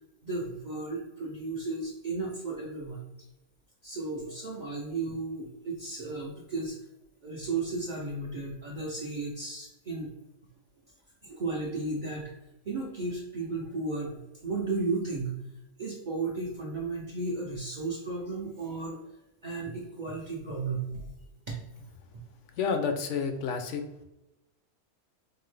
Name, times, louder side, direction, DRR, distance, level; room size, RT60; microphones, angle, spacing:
voice 1, 0.2-3.0 3.8-6.8 7.2-10.1 11.2-12.3 12.7-15.3 15.8-19.0 19.4-21.0, right 3 dB, 65° right, -4 dB, 0.4 m, -34 dB
voice 2, 22.6-23.8, left 5 dB, 65° left, 6 dB, 0.8 m, -29 dB
4.6 x 2.0 x 3.2 m, 0.93 s
omnidirectional pair, 1.6 m